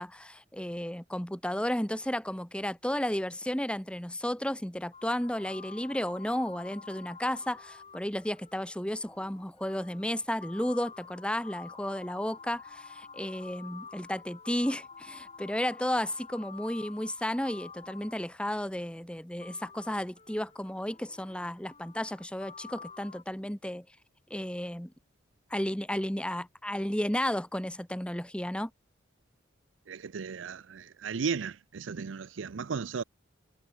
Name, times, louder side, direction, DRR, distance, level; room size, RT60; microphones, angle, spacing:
voice 1, 0.0-23.8 24.3-24.9 25.5-28.7, left 1 dB, 5° left, 1.3 m, -33 dB
sound 1, 4.9-18.7 19.4-23.2, left 5 dB, 35° left, 7.4 m, -49 dB
voice 2, 29.9-33.0, right 5 dB, 80° right, 0.5 m, -35 dB
head